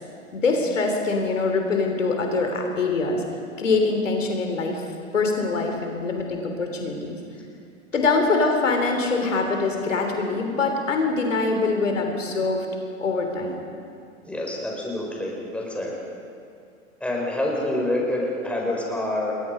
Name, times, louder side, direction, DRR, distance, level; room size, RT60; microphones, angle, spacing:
voice 1, 0.3-3.2 3.6-4.8 5.1-7.2 7.9-12.7 13.0-13.6, left 3 dB, 70° left, 3 dB, 3.6 m, -24 dB
voice 2, 14.2-15.9 17.0-19.3, left 1 dB, 5° left, -2 dB, 5.0 m, -27 dB
28.5 x 22.0 x 5.3 m, 2.4 s
figure-of-eight pair, 100°, 40 cm